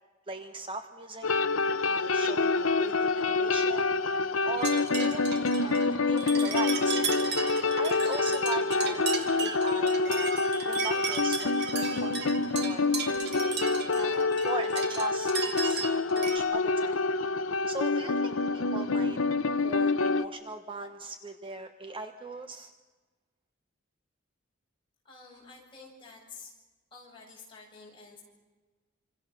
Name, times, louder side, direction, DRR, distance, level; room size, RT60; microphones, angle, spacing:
voice 1, 0.3-1.3 1.9-3.9 4.5-7.0 7.8-10.3 10.7-12.9 13.3-13.5 13.9-17.0 17.7-19.2 19.6-22.7, right 3 dB, 25° right, 7 dB, 1.1 m, -39 dB
sound 1, 1.2-20.2, left 3 dB, 75° left, 0.8 m, -27 dB
sound 2, 4.6-16.4, right 6 dB, 50° right, 2.5 m, -36 dB
voice 2, 25.0-26.5 26.9-28.2, left 4 dB, 25° left, -2 dB, 7.8 m, -50 dB
27.0 x 26.5 x 6.8 m, 1.2 s
head